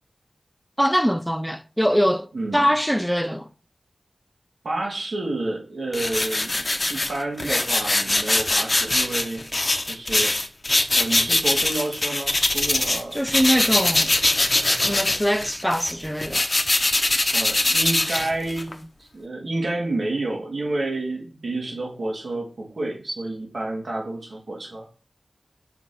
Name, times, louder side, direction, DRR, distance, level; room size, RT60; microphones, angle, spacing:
voice 1, 0.8-2.3 2.5-3.5 13.1-14.1 14.7-16.5, equal, ahead, 0.5 m, -22 dB
voice 2, 2.3-2.7 4.6-9.5 9.8-10.3 10.9-13.2 17.3-24.9, right 2 dB, 75° right, 2.2 m, -29 dB
sound 1, 5.9-13.0 13.3-18.7, left 2 dB, 40° left, 0.7 m, -22 dB
5.8 x 3.8 x 4.3 m
cardioid pair, 40°, 0 cm